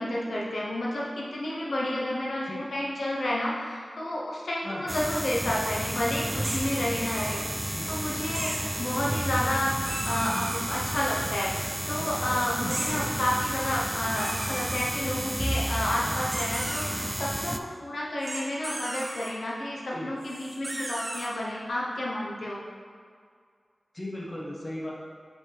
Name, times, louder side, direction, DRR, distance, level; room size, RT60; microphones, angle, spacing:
voice 1, 0.0-9.8 10.0-11.5 11.9-22.6, left 1 dB, 80° left, -4 dB, 0.9 m, -30 dB
sound 1, 4.9-17.6, right 1 dB, 10° right, 0.3 m, -32 dB
sound 2, 6.4-7.3 8.3-8.7 9.8-10.7 12.7-13.0 14.2-14.9 16.3-17.1 18.2-19.3 20.2-21.3, right 1 dB, 45° right, 1.0 m, -36 dB
voice 2, 23.9-24.9, left 1 dB, 30° left, -4 dB, 1.3 m, -36 dB
7.4 x 5.3 x 3.4 m, 2.1 s
wide cardioid pair, 75°, 0 cm